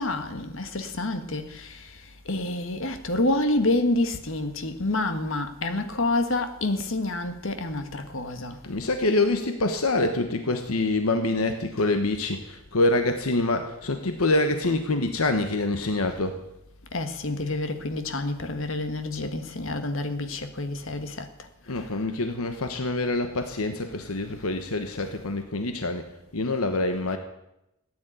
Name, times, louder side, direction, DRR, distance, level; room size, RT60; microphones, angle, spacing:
voice 1, 0.0-1.8 2.3-8.6 16.9-21.3, left 2 dB, 65° left, 1.6 m, -28 dB
voice 2, 8.6-16.4 21.7-26.1 26.3-27.2, left 2 dB, 80° left, 1.2 m, -26 dB
15.0 x 9.5 x 9.1 m
head